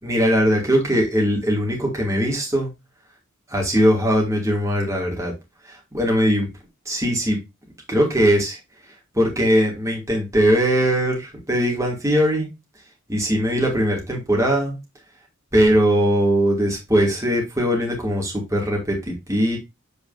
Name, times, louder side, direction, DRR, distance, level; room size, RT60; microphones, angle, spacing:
voice 1, 0.0-2.7 3.5-5.3 5.6-6.5 6.9-7.4 7.9-8.6 9.1-12.5 13.1-14.8 15.5-19.6, equal, 15° right, 2.6 m, -20 dB
8.4 x 4.5 x 2.7 m
head